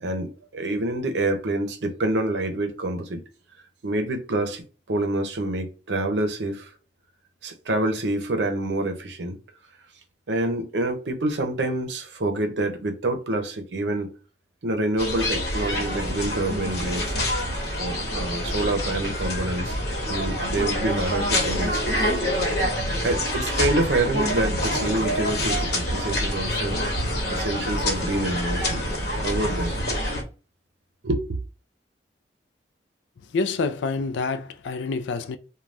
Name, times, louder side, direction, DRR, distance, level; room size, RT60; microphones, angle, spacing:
voice 1, 0.0-3.2 3.8-6.7 7.4-9.4 10.3-14.1 14.6-17.2 17.8-19.8 20.1-21.8 22.5-22.6 23.0-26.8 27.3-28.8 29.1-29.8 31.0-31.2, right 2 dB, 80° right, 0.6 m, -27 dB
sound 1, 15.0-30.2, left 1 dB, 60° left, 1.0 m, -26 dB
voice 2, 33.2-35.4, left 4 dB, 90° left, 0.4 m, -27 dB
3.2 x 2.2 x 2.5 m
head